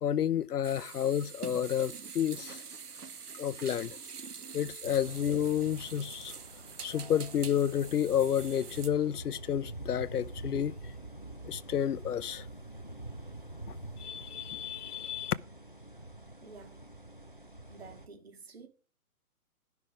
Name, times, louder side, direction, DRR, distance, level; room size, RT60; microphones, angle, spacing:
voice 1, 0.0-2.6 3.3-4.0 4.5-6.3 6.8-10.8 11.4-12.5 13.7-15.3, left 9 dB, 85° left, 0.8 m, -30 dB
sound 1, 0.6-8.9, right 6 dB, 85° right, 1.9 m, -45 dB
sound 2, 4.8-18.1, right 1 dB, 40° left, 0.4 m, -46 dB
voice 2, 16.4-16.9 17.7-18.7, right 4 dB, 40° right, 2.1 m, -50 dB
12.0 x 5.9 x 4.8 m
hypercardioid pair, 180°, 45 cm